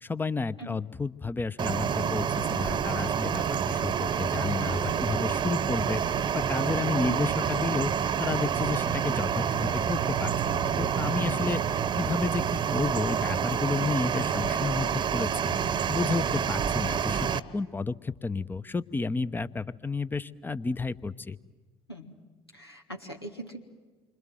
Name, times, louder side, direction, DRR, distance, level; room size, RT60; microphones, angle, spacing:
voice 1, 0.0-6.0 6.3-7.9 8.2-15.5 15.9-21.4, left 4 dB, 15° left, 16 dB, 0.9 m, -31 dB
sound 1, 1.6-17.4, right 8 dB, 35° right, 1.1 m, -28 dB
voice 2, 22.5-23.6, right 2 dB, 85° left, 2 dB, 2.1 m, -41 dB
29.0 x 25.5 x 7.7 m, 1.3 s
figure-of-eight pair, 55°, 13 cm